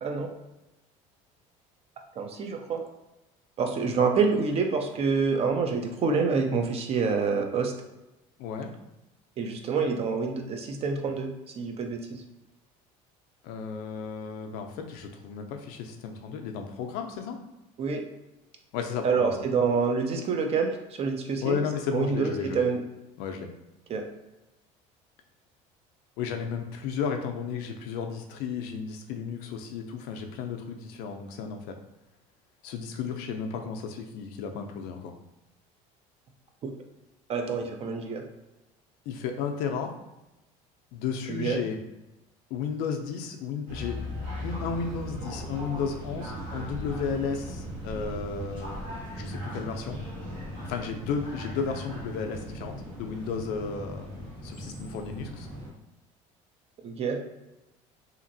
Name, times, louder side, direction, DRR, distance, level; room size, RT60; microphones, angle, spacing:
voice 1, 2.2-2.8 3.6-7.7 9.4-12.2 17.8-18.0 19.0-21.6 21.9-22.8 23.9-24.0 37.3-38.2 41.3-41.6 56.8-57.2, right 5 dB, 40° right, 4 dB, 0.5 m, -27 dB
voice 2, 8.4-8.7 13.4-17.4 18.7-19.4 21.4-22.6 23.2-23.5 26.2-31.8 32.6-35.1 39.1-39.9 40.9-41.8 42.5-44.0 44.4-48.8 49.1-50.0 50.7-54.1 54.4-55.5, left 6 dB, 75° left, 4 dB, 0.5 m, -33 dB
sound 1, 43.7-55.7, equal, 65° right, 1.2 m, -38 dB
2.8 x 2.5 x 2.6 m, 0.96 s
supercardioid pair, 105°, 16 cm